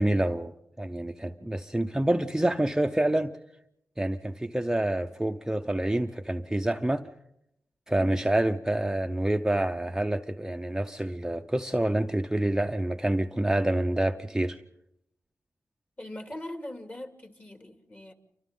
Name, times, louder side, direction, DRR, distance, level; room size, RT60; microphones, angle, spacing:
voice 1, 0.0-3.3 4.0-7.1 7.9-14.6, right 1 dB, 10° right, 0.7 m, -27 dB
voice 2, 16.0-18.1, left 1 dB, 30° left, 2.6 m, -41 dB
29.0 x 25.0 x 3.9 m
cardioid pair, 75°, 6 cm